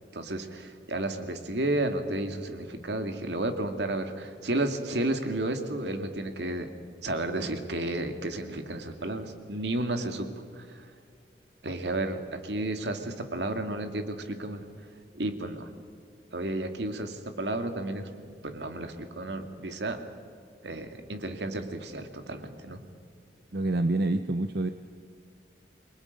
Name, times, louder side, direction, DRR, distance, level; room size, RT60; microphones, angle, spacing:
voice 1, 0.1-6.7 7.0-10.3 10.5-10.9 11.6-14.6 15.1-15.7 16.3-18.1 18.4-20.0 20.6-22.8, right 1 dB, 80° right, 6 dB, 2.2 m, -32 dB
voice 2, 23.5-24.7, right 2 dB, 60° right, 9 dB, 0.8 m, -27 dB
29.5 x 22.5 x 5.3 m, 2.2 s
head